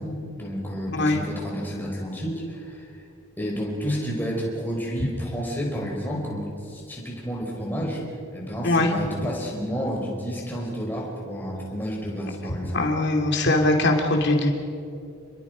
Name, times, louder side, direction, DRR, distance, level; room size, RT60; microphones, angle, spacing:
voice 1, 0.0-2.9 3.4-8.0 8.3-12.9, equal, 10° left, -2 dB, 4.6 m, -30 dB
voice 2, 12.7-14.5, left 2 dB, 50° left, 2 dB, 2.7 m, -21 dB
28.5 x 21.5 x 5.2 m, 2.6 s
head